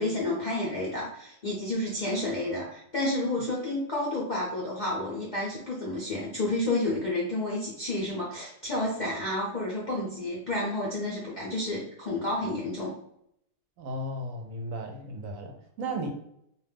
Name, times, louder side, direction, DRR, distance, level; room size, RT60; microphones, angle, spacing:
voice 1, 0.0-12.9, left 1 dB, 50° left, -6 dB, 0.5 m, -30 dB
voice 2, 13.8-16.1, right 1 dB, 70° right, 2 dB, 0.9 m, -35 dB
2.4 x 2.2 x 3.3 m, 0.72 s
omnidirectional pair, 1.6 m